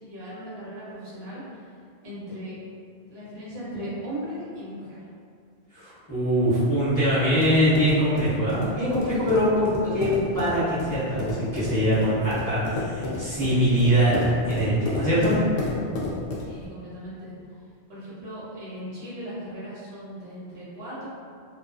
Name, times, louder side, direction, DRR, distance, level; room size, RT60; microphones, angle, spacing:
voice 1, 0.0-1.7 2.0-2.6 3.1-5.0 16.5-17.3 17.9-21.1, equal, 65° right, -9 dB, 1.1 m, -37 dB
voice 2, 5.7-14.1 14.4-15.3, equal, 20° left, -15 dB, 0.9 m, -23 dB
sound 1, 6.9-16.6, left 2 dB, 65° left, 0.7 m, -32 dB
2.5 x 2.4 x 2.4 m, 2.2 s
omnidirectional pair, 1.1 m